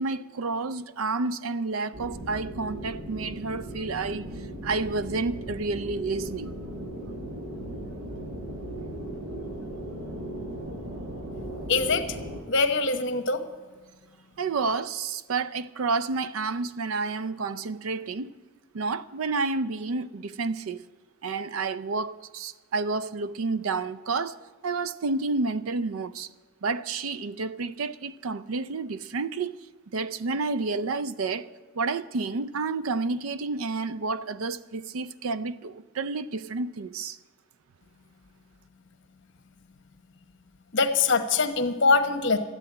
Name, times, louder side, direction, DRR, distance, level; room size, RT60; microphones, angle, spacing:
voice 1, 0.0-4.2 4.6-6.6 14.4-18.3 18.7-20.9 21.2-24.4 24.6-26.3 26.6-29.6 29.9-37.2, right 3 dB, 90° right, 0.5 m, -30 dB
sound 1, 1.9-12.4, right 1 dB, 55° right, 4.7 m, -37 dB
voice 2, 11.7-12.1 12.5-13.4 40.7-42.4, left 4 dB, 60° left, 1.1 m, -23 dB
13.0 x 10.0 x 8.5 m
head